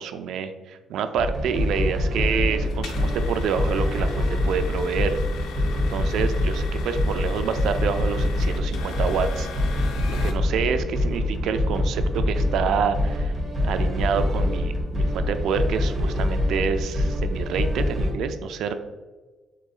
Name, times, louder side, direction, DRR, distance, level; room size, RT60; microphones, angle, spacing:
voice 1, 0.0-5.2 5.9-9.5 10.1-13.3 13.7-18.7, right 6 dB, 80° right, 9 dB, 0.4 m, -27 dB
sound 1, 1.2-18.1, left 1 dB, 35° right, 1.0 m, -25 dB
sound 2, 2.6-10.3, left 3 dB, 90° left, 0.5 m, -38 dB
4.7 x 4.0 x 2.4 m, 1.3 s
cardioid pair, 90°, 0 cm